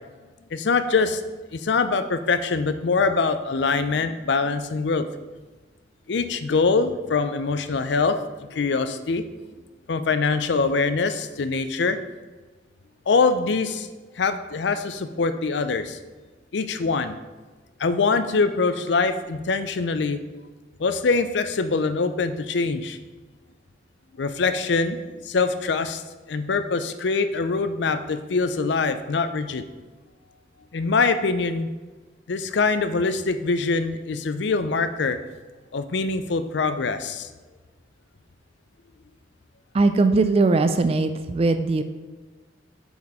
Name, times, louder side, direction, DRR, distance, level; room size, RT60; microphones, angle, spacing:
voice 1, 0.5-1.2 1.5-5.1 6.1-8.2 8.5-9.2 9.9-12.0 13.1-13.9 14.2-16.0 16.5-17.2 17.8-20.2 20.8-23.0 24.2-26.0 26.3-29.6 30.7-31.7 32.3-35.2 35.7-37.3, left 4 dB, 65° left, 11 dB, 0.5 m, -23 dB
voice 2, 39.7-41.8, right 3 dB, 30° right, 9 dB, 0.3 m, -20 dB
7.0 x 4.2 x 4.8 m, 1.3 s
head